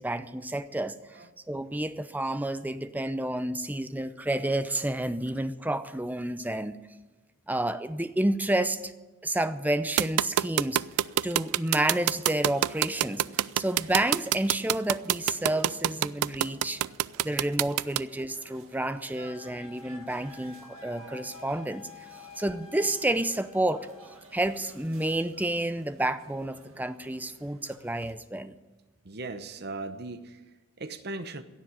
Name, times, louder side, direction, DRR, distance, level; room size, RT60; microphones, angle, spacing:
voice 1, 0.0-6.8 7.5-8.9 9.2-10.8 11.2-16.8 17.2-22.1 22.4-23.9 24.3-28.5, right 1 dB, 10° right, 0.5 m, -30 dB
sound 1, 10.0-18.0, right 12 dB, 90° right, 0.4 m, -25 dB
sound 2, 10.7-28.2, right 2 dB, 70° right, 2.3 m, -54 dB
Wind instrument woodwind instrument, 19.2-24.2, left 4 dB, 30° left, 2.9 m, -50 dB
voice 2, 29.0-31.4, right 2 dB, 45° right, 0.9 m, -38 dB
16.5 x 7.4 x 9.8 m
head